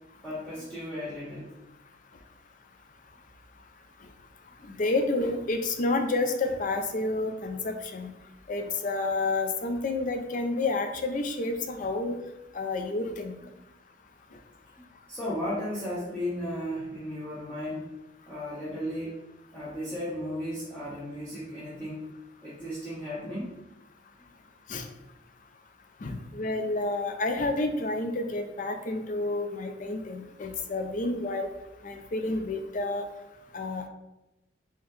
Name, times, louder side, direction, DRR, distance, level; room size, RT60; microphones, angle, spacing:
voice 1, 0.2-1.5 13.4-13.6 14.8-17.9 18.3-19.2 19.5-22.1 22.4-23.5 26.1-26.2, equal, 10° left, -11 dB, 0.8 m, -35 dB
voice 2, 4.6-8.1 8.5-12.2 12.5-13.3 24.7-24.9 26.0-31.5 31.8-33.0 33.5-33.9, left 2 dB, 45° left, 6 dB, 0.4 m, -29 dB
3.7 x 2.9 x 3.1 m, 0.97 s
head